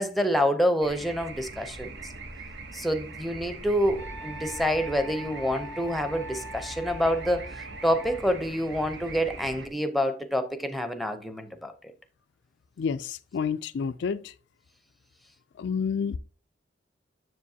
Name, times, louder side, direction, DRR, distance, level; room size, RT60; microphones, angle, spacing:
voice 1, 0.0-2.0 2.7-11.7, equal, ahead, 0.7 m, -27 dB
sound 1, 0.8-9.7, right 3 dB, 65° right, 1.0 m, -42 dB
Wind instrument woodwind instrument, 4.0-8.2, left 1 dB, 85° right, 3.4 m, -43 dB
voice 2, 12.8-14.3 15.6-16.2, left 6 dB, 65° left, 0.3 m, -29 dB
7.3 x 6.9 x 2.8 m
head